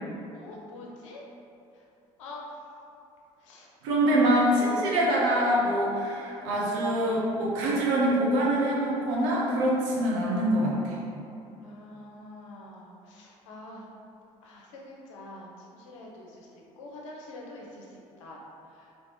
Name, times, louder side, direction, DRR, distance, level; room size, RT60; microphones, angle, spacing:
voice 1, 0.3-1.2 2.2-2.4 3.4-3.7 4.0-4.2 4.6-4.9 11.6-13.8 14.4-17.9 18.2-18.5, left 2 dB, 85° left, -2 dB, 0.6 m, -45 dB
voice 2, 3.8-10.9, right 1 dB, 80° right, -4 dB, 0.7 m, -25 dB
3.0 x 2.8 x 3.5 m, 2.7 s
hypercardioid pair, 55°, 16 cm